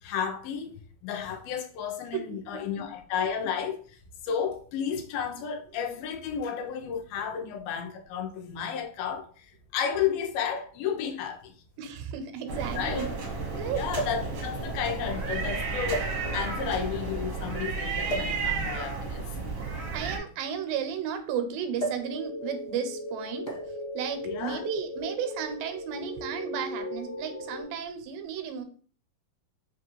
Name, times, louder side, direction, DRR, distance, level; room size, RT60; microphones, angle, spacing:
voice 1, 0.0-4.0 4.2-11.5 12.8-13.1 13.7-19.3 19.7-19.8 24.2-24.6, left 7 dB, 85° left, 2.4 m, -32 dB
sound 1, 10.2-10.3 11.4-11.5 11.7-11.8 13.9-14.3 15.1-15.3 15.9-16.6 18.1-18.4 19.5-21.2 21.8-22.1 22.4-22.7 23.4-23.8 24.8-25.0, right 1 dB, 45° left, 0.6 m, -35 dB
voice 2, 11.8-13.1 13.6-13.8 19.9-23.5 23.9-28.6, right 7 dB, 90° right, 2.4 m, -33 dB
sound 2, 12.5-20.2, right 4 dB, 75° right, 1.2 m, -32 dB
sound 3, 22.0-27.6, left 1 dB, 65° left, 2.5 m, -38 dB
5.5 x 2.4 x 3.0 m
omnidirectional pair, 4.0 m